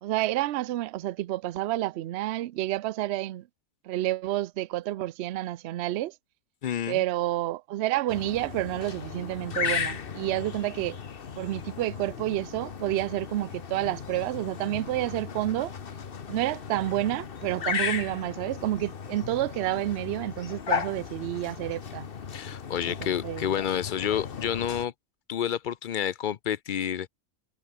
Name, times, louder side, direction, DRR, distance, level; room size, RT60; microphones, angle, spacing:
voice 1, 0.0-3.5 3.8-6.1 6.9-11.0 11.4-15.7 16.3-22.1 22.8-23.5, right 15 dB, 65° right, 0.6 m, -29 dB
voice 2, 6.6-7.0 22.3-24.9 25.3-27.1, left 9 dB, 90° left, 0.4 m, -29 dB
sound 1, 8.1-24.9, left 6 dB, 40° left, 1.1 m, -36 dB
omnidirectional pair, 1.6 m